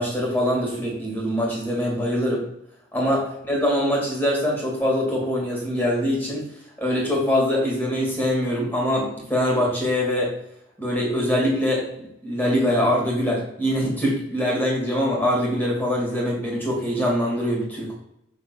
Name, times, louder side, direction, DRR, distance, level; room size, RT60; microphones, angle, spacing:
voice 1, 0.0-2.4 2.9-6.5 6.8-10.4 10.8-17.9, equal, 10° left, -4 dB, 2.3 m, -23 dB
6.3 x 4.0 x 5.9 m, 0.77 s
head